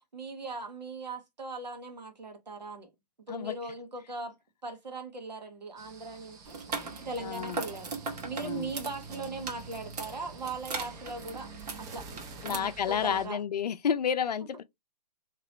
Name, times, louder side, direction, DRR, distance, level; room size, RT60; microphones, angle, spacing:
voice 1, 0.1-2.9 3.3-4.4 4.6-6.6 7.0-7.9 8.2-11.5 11.8-13.4, right 3 dB, 90° right, 1.3 m, -39 dB
sound 1, 5.8-13.3, right 3 dB, 15° right, 0.5 m, -48 dB
sound 2, 6.4-12.5, right 4 dB, 70° right, 1.2 m, -40 dB
voice 2, 7.2-7.6 8.4-8.7 12.4-14.6, left 8 dB, 70° left, 0.5 m, -30 dB
2.9 x 2.9 x 3.0 m
hypercardioid pair, 130°, 21 cm